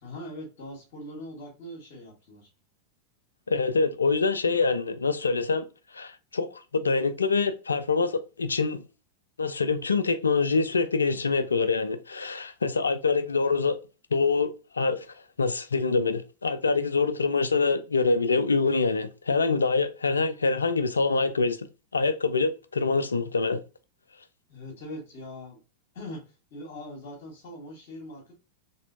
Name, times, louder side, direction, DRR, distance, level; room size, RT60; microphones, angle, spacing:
voice 1, 0.0-2.5 24.5-25.6 25.9-28.3, left 1 dB, 55° left, 1.8 m, -41 dB
voice 2, 3.5-5.7 5.9-8.8 9.4-13.8 14.1-15.1 15.4-21.7 21.9-23.6, left 4 dB, 75° left, 0.5 m, -25 dB
4.2 x 3.4 x 2.7 m
figure-of-eight pair, 90°, 0 cm